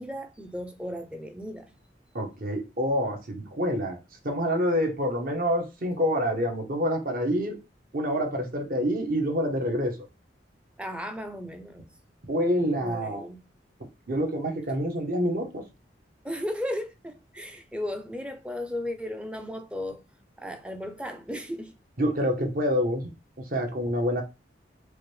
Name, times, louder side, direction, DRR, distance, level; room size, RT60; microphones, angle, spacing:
voice 1, 0.0-1.7 10.8-11.9 12.8-13.5 16.2-20.0 20.4-21.7, left 1 dB, 5° right, 0.5 m, -35 dB
voice 2, 2.1-4.0 4.2-7.6 7.9-10.0 12.3-13.3 14.1-15.6 22.0-23.1 23.4-24.2, equal, 55° right, 1.0 m, -27 dB
4.8 x 2.2 x 3.2 m
head